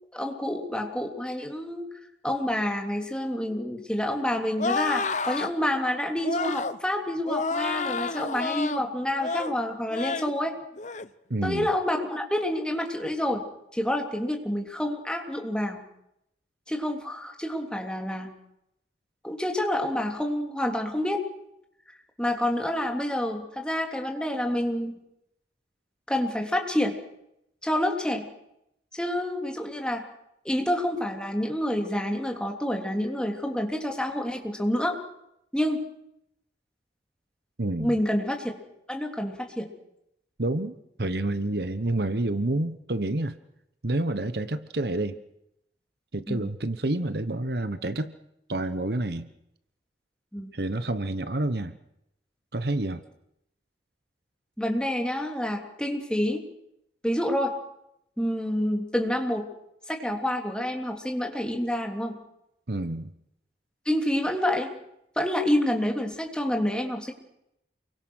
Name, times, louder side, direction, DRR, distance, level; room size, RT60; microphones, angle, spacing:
voice 1, 0.1-1.9 2.2-10.5 11.4-13.4 13.7-15.8 16.7-18.3 19.2-21.2 22.2-25.0 26.1-26.9 27.6-28.3 28.9-30.0 30.4-35.0 35.5-35.8 37.8-38.6 38.9-39.7 46.3-46.5 50.3-50.5 54.6-56.4 57.0-57.5 58.2-59.5 59.9-62.2 63.8-64.7 65.1-67.1, left 1 dB, 5° left, 2 dB, 3.3 m, -28 dB
sound 1, 4.6-5.5 6.2-6.8 7.3-8.8 9.2-9.5 9.9-10.3 10.8-11.1, left 4 dB, 40° left, 0.9 m, -29 dB
voice 2, 11.3-11.7 37.6-38.0 40.4-43.4 43.8-45.2 46.1-48.1 48.5-49.3 50.5-51.8 52.5-53.0 62.7-63.1, right 2 dB, 60° right, 12 dB, 1.2 m, -28 dB
28.5 x 23.5 x 6.5 m, 0.81 s
head